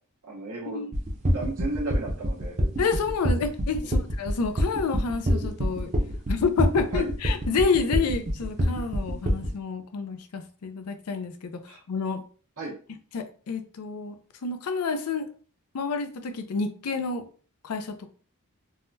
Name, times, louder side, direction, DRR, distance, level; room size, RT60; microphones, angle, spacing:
voice 1, 0.2-0.8 1.3-2.5 3.8-3.9 6.9-7.1 11.7-11.8 12.6-12.7, right 3 dB, 80° right, 0.9 m, -34 dB
sound 1, 0.9-9.5, equal, 30° right, 0.6 m, -25 dB
voice 2, 2.8-5.9 6.3-11.6 11.9-12.2 13.1-15.3 15.7-17.3 17.6-18.1, left 5 dB, 85° left, 0.5 m, -29 dB
3.5 x 2.2 x 2.6 m
head